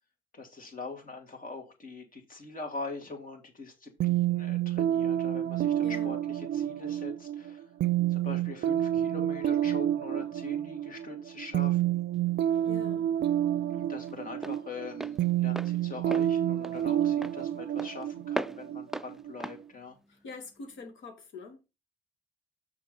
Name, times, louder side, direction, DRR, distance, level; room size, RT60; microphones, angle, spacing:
voice 1, 0.3-7.6 8.1-12.0 13.7-20.0, left 3 dB, 45° left, 2.8 m, -43 dB
sound 1, 4.0-19.6, right 11 dB, 60° right, 0.5 m, -29 dB
voice 2, 5.8-6.2 12.7-13.1 20.1-21.6, left 4 dB, 75° left, 2.2 m, -45 dB
Walk footsteps, 12.1-20.8, right 1 dB, ahead, 0.3 m, -41 dB
6.6 x 4.9 x 5.3 m
cardioid pair, 90°, 20 cm